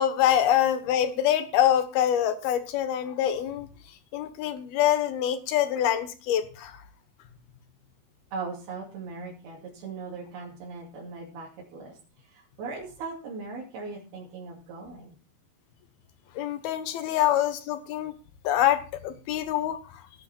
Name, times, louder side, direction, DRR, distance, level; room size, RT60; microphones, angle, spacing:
voice 1, 0.0-3.7 4.1-6.8 16.4-18.1 18.4-20.1, left 11 dB, 80° left, 10 dB, 3.2 m, -25 dB
voice 2, 8.3-15.2, right 4 dB, 85° right, -4 dB, 4.7 m, -39 dB
17.5 x 8.0 x 4.4 m, 0.36 s
omnidirectional pair, 4.4 m